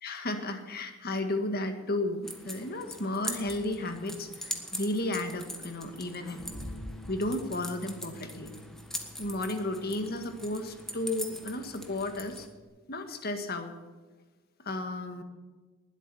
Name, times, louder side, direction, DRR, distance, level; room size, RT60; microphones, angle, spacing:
voice 1, 0.0-6.4 7.1-8.6 9.2-12.5 12.9-13.7 14.6-15.2, left 2 dB, 45° left, 7 dB, 1.8 m, -33 dB
sound 1, 2.2-12.5, equal, ahead, 1.5 m, -42 dB
Bass guitar, 6.4-12.6, left 1 dB, 85° left, 2.2 m, -52 dB
20.0 x 8.3 x 7.1 m, 1.3 s
head